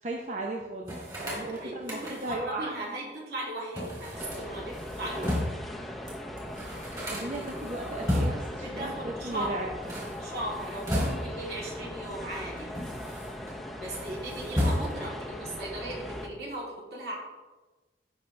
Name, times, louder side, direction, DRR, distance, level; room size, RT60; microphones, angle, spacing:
voice 1, 0.0-2.7 7.1-9.7, right 2 dB, 40° right, 0 dB, 0.8 m, -36 dB
sound 1, 0.8-2.5 3.7-5.7 6.1-6.2 6.4-8.6 9.7-11.5 12.3-13.5 13.9-15.2, equal, 20° right, 3.5 m, -33 dB
voice 2, 1.3-5.7 8.5-9.8 10.2-12.8 13.7-17.2, right 1 dB, 70° right, -4 dB, 3.1 m, -38 dB
sound 2, 4.1-16.3, left 1 dB, ahead, 0.7 m, -39 dB
16.5 x 5.9 x 3.3 m, 1.2 s
head